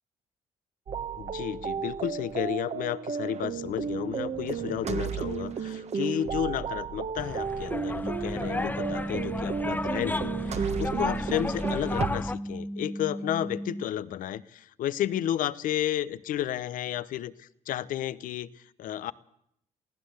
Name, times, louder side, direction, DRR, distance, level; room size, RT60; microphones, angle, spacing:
sound 1, 0.9-12.1, right 6 dB, 50° right, 1.6 m, -33 dB
voice 1, 1.2-19.1, left 12 dB, 75° left, 16 dB, 0.9 m, -32 dB
sound 2, 7.1-12.3, left 2 dB, 10° left, 1.0 m, -34 dB
sound 3, 8.0-13.9, equal, 15° right, 1.0 m, -36 dB
23.5 x 16.0 x 8.0 m, 0.72 s
supercardioid pair, 75°, 14 cm